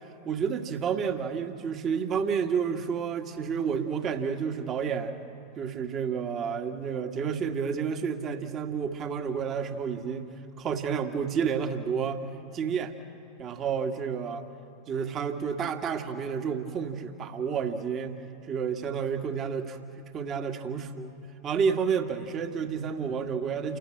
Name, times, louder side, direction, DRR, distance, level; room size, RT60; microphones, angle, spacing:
voice 1, 0.2-5.2 5.6-10.3 10.6-12.3 12.5-13.0 13.4-14.5 14.9-21.2 21.4-23.8, right 6 dB, 35° right, 5 dB, 1.7 m, -30 dB
29.0 x 17.0 x 8.9 m, 2.7 s
figure-of-eight pair, 85°, 0 cm